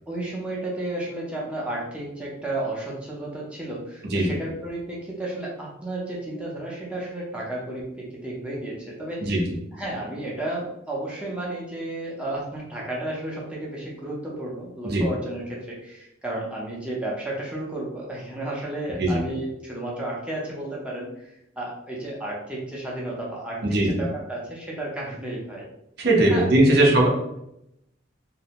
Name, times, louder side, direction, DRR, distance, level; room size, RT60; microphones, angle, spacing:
voice 1, 0.1-9.4 9.7-25.7 26.3-26.4 26.8-26.9, right 1 dB, 5° right, -5 dB, 0.6 m, -32 dB
voice 2, 26.0-27.1, right 1 dB, 55° right, -2 dB, 0.6 m, -19 dB
2.6 x 2.1 x 2.8 m, 0.82 s
head